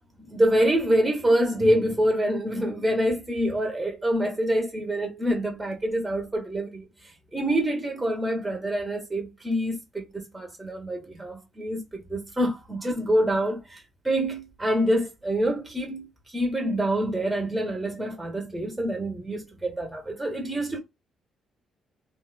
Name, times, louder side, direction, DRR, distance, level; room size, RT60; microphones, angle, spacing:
voice 1, 0.2-20.8, equal, 15° right, 0.8 m, -26 dB
2.9 x 2.1 x 2.3 m
cardioid pair, 90°, 0 cm